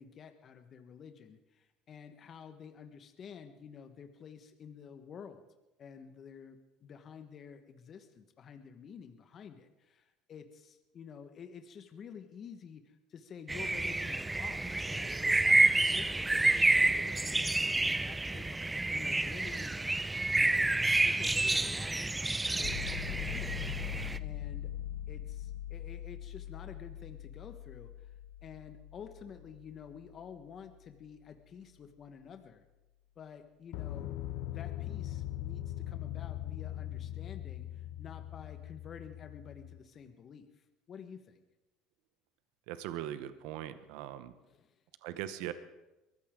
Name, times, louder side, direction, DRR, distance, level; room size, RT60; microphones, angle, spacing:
voice 1, 0.0-5.4 5.8-18.6 18.9-19.8 20.3-23.6 24.2-24.7 25.1-28.1 28.4-32.6 33.1-34.1 34.5-41.4 44.5-44.8, left 7 dB, 45° left, 7 dB, 1.4 m, -50 dB
sound 1, 13.5-24.2, right 2 dB, 10° right, 0.5 m, -29 dB
sound 2, 22.6-30.4 33.7-39.8, left 12 dB, 75° left, 0.8 m, -41 dB
voice 2, 42.7-44.3 45.0-45.5, right 12 dB, 75° right, 12 dB, 0.9 m, -40 dB
22.5 x 14.5 x 3.8 m, 1.0 s
supercardioid pair, 95°, 0 cm